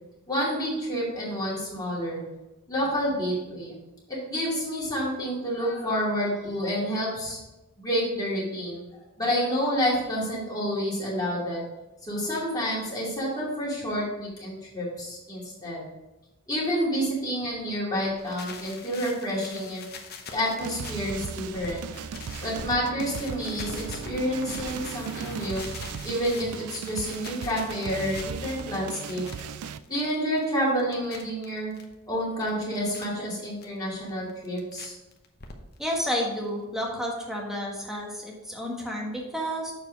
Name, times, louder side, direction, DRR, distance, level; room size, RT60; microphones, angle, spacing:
voice 1, 0.3-2.2 2.7-3.7 4.1-7.4 7.8-11.6 12.0-15.8 16.5-19.8 20.3-21.8 22.4-25.7 26.0-29.2 29.9-31.7 32.1-34.9, equal, 20° left, -7 dB, 2.6 m, -29 dB
sound 1, 18.1-22.7 23.0-31.8 32.2-33.0 33.6-33.7 34.1-34.9 35.1-35.9 36.2-36.3 36.5-36.6 36.8-36.9, left 4 dB, 45° left, 0.9 m, -43 dB
Chiptune Heist Music, 20.6-29.8, right 6 dB, 90° right, 0.4 m, -37 dB
voice 2, 35.8-39.7, equal, ahead, -2 dB, 1.3 m, -31 dB
7.0 x 4.6 x 5.1 m, 1.0 s
head